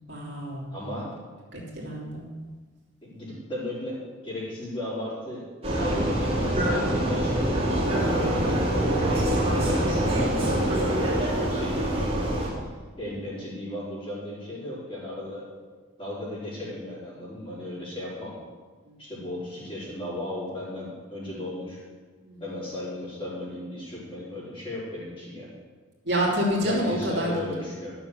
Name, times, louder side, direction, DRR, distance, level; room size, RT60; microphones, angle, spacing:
voice 1, 0.1-0.7 1.5-2.3 18.9-19.0 22.3-22.4 26.0-27.3, equal, 55° right, -4 dB, 3.0 m, -28 dB
voice 2, 0.7-1.1 3.0-9.3 9.6-12.4 13.0-15.4 16.0-18.3 19.0-21.8 22.4-25.5 26.6-27.9, left 1 dB, 25° left, -8 dB, 4.5 m, -35 dB
Vehicle, 5.6-12.5, right 1 dB, 30° right, 3.0 m, -25 dB
12.5 x 7.0 x 7.2 m, 1.4 s
head